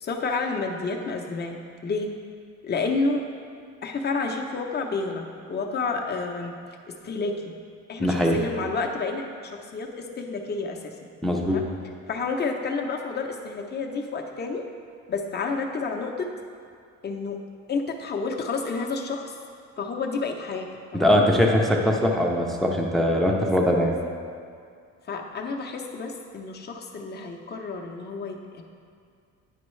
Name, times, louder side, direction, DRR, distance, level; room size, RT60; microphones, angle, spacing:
voice 1, 0.0-1.6 1.8-2.1 2.6-3.2 3.8-6.5 7.0-7.5 7.9-10.9 11.4-11.7 12.1-14.6 15.1-16.3 17.0-17.4 17.7-19.3 19.8-20.7 20.9-21.1 23.4-23.5 25.1-28.6, left 4 dB, 35° left, 2 dB, 0.7 m, -30 dB
voice 2, 8.0-8.4 11.2-11.6 21.0-24.0, equal, ahead, 0 dB, 0.5 m, -21 dB
9.8 x 5.3 x 3.2 m, 2.2 s
cardioid pair, 130°, 29 cm